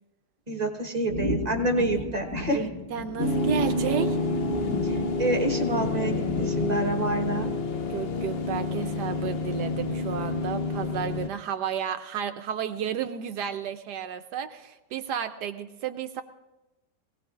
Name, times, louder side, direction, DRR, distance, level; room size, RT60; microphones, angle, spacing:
voice 1, 0.5-2.6 4.8-7.5, right 1 dB, 25° right, 2 dB, 1.1 m, -28 dB
sound 1, 1.1-7.9, left 1 dB, 20° left, 1.0 m, -35 dB
voice 2, 2.5-4.2 7.9-16.2, right 8 dB, 75° right, 8 dB, 1.2 m, -32 dB
sound 2, 3.2-11.3, left 3 dB, 65° left, 0.6 m, -28 dB
22.5 x 17.5 x 2.4 m, 1.0 s
omnidirectional pair, 1.9 m